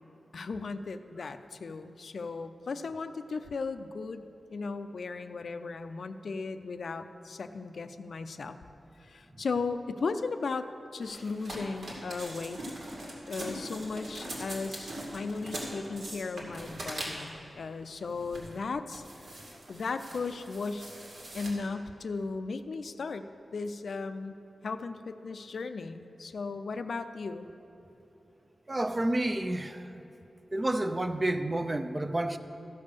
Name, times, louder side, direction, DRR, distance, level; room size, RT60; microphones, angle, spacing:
voice 1, 0.3-8.6 9.0-12.6 13.2-19.3 19.7-20.9 21.3-23.2 23.5-24.4 24.6-27.5, left 4 dB, 70° left, 10 dB, 0.4 m, -36 dB
sound 1, 11.0-17.4 18.0-18.6 18.9-21.5, right 1 dB, 80° right, 2.2 m, -41 dB
voice 2, 28.7-29.8 30.5-32.4, right 1 dB, 20° right, 9 dB, 0.4 m, -29 dB
14.5 x 5.4 x 6.7 m, 2.9 s
wide cardioid pair, 130°, 0 cm